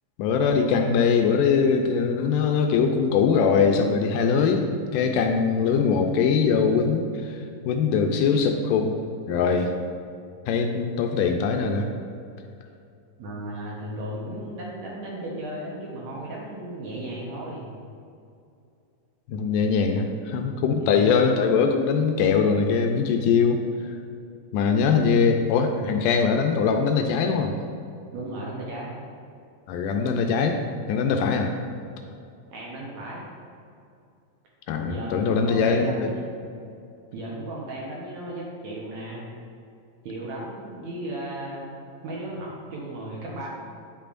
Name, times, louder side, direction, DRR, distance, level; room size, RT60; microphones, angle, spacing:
voice 1, 0.2-7.4 7.7-9.0 9.3-9.7 10.5-11.9 19.3-23.6 24.5-27.6 29.7-30.6 30.9-31.5 34.7-36.1, left 5 dB, 80° left, 4 dB, 2.0 m, -22 dB
voice 2, 13.2-17.7 20.3-20.4 20.8-21.2 28.1-29.0 32.5-33.3 34.9-36.2 37.1-39.3 40.0-43.5, right 1 dB, 65° right, -4 dB, 2.0 m, -35 dB
9.8 x 5.6 x 2.5 m, 2.5 s
omnidirectional pair, 3.9 m